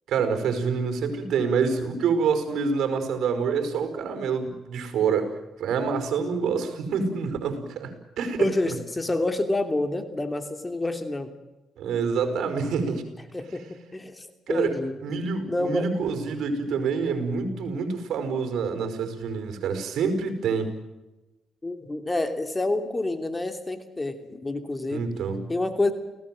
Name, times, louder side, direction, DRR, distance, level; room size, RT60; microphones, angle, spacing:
voice 1, 0.1-8.7 11.8-13.1 14.5-20.7 24.9-25.4, right 5 dB, 70° right, 8 dB, 5.2 m, -27 dB
voice 2, 8.4-11.3 13.3-15.0 15.5-15.9 21.6-25.1 25.5-25.9, left 2 dB, 20° left, 8 dB, 3.0 m, -28 dB
29.5 x 18.0 x 7.7 m, 1.0 s
cardioid pair, 90°, 0 cm